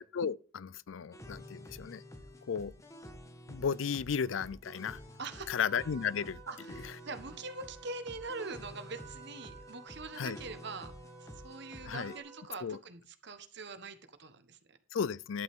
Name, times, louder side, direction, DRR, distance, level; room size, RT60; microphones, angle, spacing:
voice 1, 0.0-2.0 2.5-2.7 3.5-5.0 5.5-6.4 10.2-10.4 11.9-12.1 12.6-12.8 14.9-15.4, left 6 dB, 70° left, 0.4 m, -34 dB
sound 1, 1.1-12.2, equal, 15° left, 1.5 m, -50 dB
voice 2, 5.2-5.6 6.5-10.9 11.2-14.8, right 3 dB, 60° right, 1.3 m, -43 dB
Trumpet, 5.6-12.5, right 5 dB, 30° right, 3.3 m, -54 dB
12.0 x 8.4 x 3.7 m
head